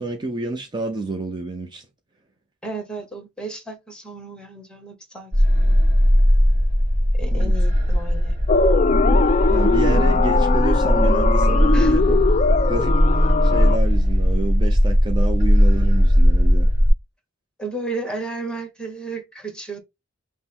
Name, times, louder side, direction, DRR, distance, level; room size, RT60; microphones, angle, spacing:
voice 1, 0.0-1.9 7.3-7.5 9.5-16.7, right 2 dB, 20° right, 0.7 m, -29 dB
voice 2, 2.6-6.1 7.2-8.6 11.7-12.0 17.6-19.8, right 2 dB, 5° left, 1.2 m, -33 dB
sound 1, 5.3-16.9, equal, 35° right, 1.2 m, -18 dB
sound 2, 8.5-13.8, left 4 dB, 35° left, 0.3 m, -21 dB
5.9 x 2.1 x 4.2 m
head